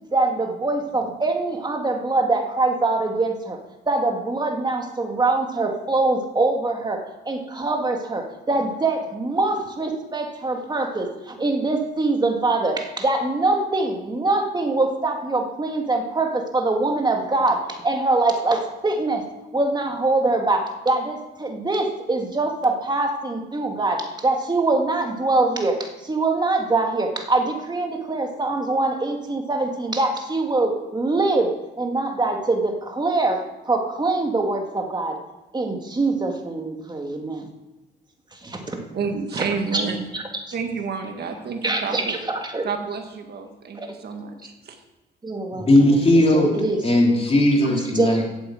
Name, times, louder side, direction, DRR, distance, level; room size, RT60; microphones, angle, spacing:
voice 1, 0.1-3.6 3.9-19.2 19.5-35.2 35.5-37.5 38.3-38.8 39.3-39.4 39.7-39.8 40.1-40.2 41.6-42.7 43.7-43.9 45.2-46.0 46.3-46.8 47.9-48.2, right 2 dB, 20° right, 3 dB, 2.1 m, -23 dB
voice 2, 38.9-40.0 40.5-42.1 42.6-44.7, right 5 dB, 55° right, 3 dB, 1.8 m, -29 dB
voice 3, 45.5-46.5 46.8-48.2, left 1 dB, 30° left, -1 dB, 3.4 m, -17 dB
8.5 x 8.3 x 7.9 m, 1.0 s
cardioid pair, 90°, 20 cm